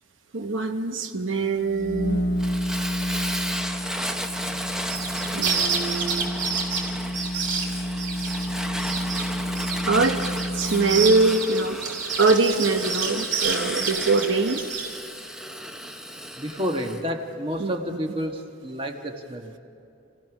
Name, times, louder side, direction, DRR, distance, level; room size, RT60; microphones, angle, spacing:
voice 1, 0.3-2.2 5.3-6.3 9.9-10.2 10.5-11.8 12.2-15.0 17.6-18.0, right 3 dB, 80° right, 6 dB, 0.9 m, -23 dB
sound 1, 1.6-11.4, equal, 55° left, 0.8 m, -30 dB
Fire, 2.4-17.0, equal, 5° right, 0.8 m, -34 dB
sound 2, 4.9-8.5 8.8-9.2 9.6-14.9, right 5 dB, 65° right, 3.1 m, -29 dB
voice 2, 16.4-19.6, equal, 25° right, 3 dB, 1.3 m, -30 dB
27.5 x 15.5 x 6.1 m, 2.7 s
head